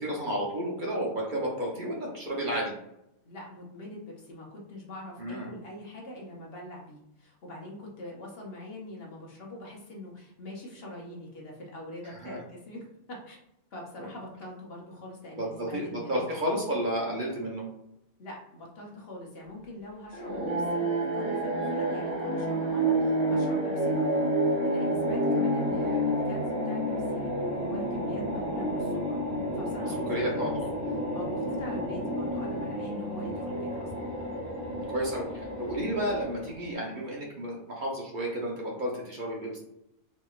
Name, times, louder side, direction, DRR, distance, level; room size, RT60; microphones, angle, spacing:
voice 1, 0.0-2.7 5.2-5.5 12.0-12.4 15.4-17.6 30.1-30.7 34.7-39.6, equal, 45° right, -3 dB, 0.9 m, -32 dB
voice 2, 3.2-13.4 13.7-16.3 18.2-20.9 21.1-24.2 24.4-29.2 29.5-30.5 31.1-34.1, left 1 dB, 55° left, -2 dB, 1.1 m, -43 dB
sound 1, 20.1-36.7, right 1 dB, 75° right, 1.4 m, -30 dB
4.2 x 2.8 x 2.4 m, 0.82 s
omnidirectional pair, 1.2 m